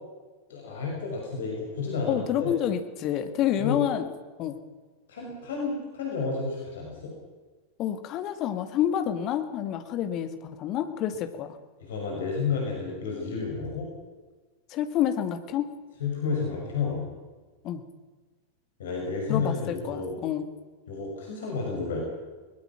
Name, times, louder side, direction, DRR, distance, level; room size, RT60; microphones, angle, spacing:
voice 1, 0.5-2.5 3.6-3.8 5.1-7.1 11.8-13.9 16.0-17.0 18.8-20.1 20.9-22.0, left 4 dB, 60° left, -1 dB, 5.8 m, -31 dB
voice 2, 2.1-4.1 4.4-4.6 7.8-11.6 14.7-15.7 17.6-17.8 19.3-20.4, left 10 dB, 35° left, 9 dB, 2.0 m, -28 dB
21.5 x 20.0 x 6.0 m, 1.3 s
figure-of-eight pair, 90°, 0 cm